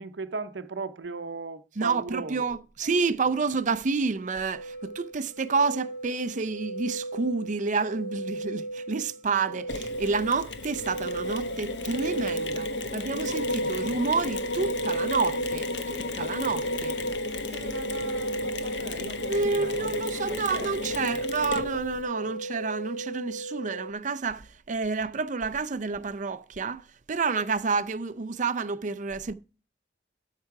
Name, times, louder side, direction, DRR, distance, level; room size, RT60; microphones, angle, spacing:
voice 1, 0.0-2.4 3.1-3.2 13.5-13.8 17.5-21.2 22.0-22.2, right 3 dB, 85° right, 0.7 m, -39 dB
voice 2, 1.8-17.0 19.0-29.3, right 4 dB, 45° right, 0.6 m, -29 dB
sound 1, 4.5-23.9, right 2 dB, 55° left, 0.9 m, -35 dB
Mechanisms, 9.7-22.0, left 3 dB, 85° left, 1.2 m, -34 dB
12.5 x 5.7 x 4.7 m
head